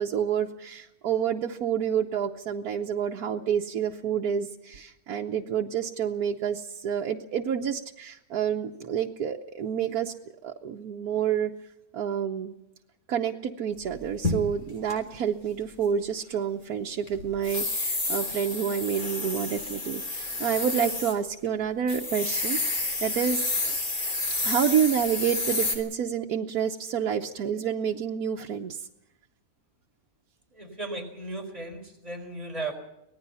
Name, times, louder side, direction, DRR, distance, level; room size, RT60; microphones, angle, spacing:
voice 1, 0.0-10.1 10.4-11.5 11.9-12.5 13.1-22.6 23.0-23.8 24.4-28.9, right 8 dB, 85° right, 1 dB, 1.5 m, -28 dB
sound 1, 13.9-14.9 17.1-21.1 21.5-21.6 21.9-25.8, left 2 dB, 70° left, 4.1 m, -30 dB
voice 2, 30.5-32.7, right 2 dB, 25° right, 1 dB, 4.6 m, -36 dB
25.0 x 19.0 x 5.6 m, 0.87 s
omnidirectional pair, 1.5 m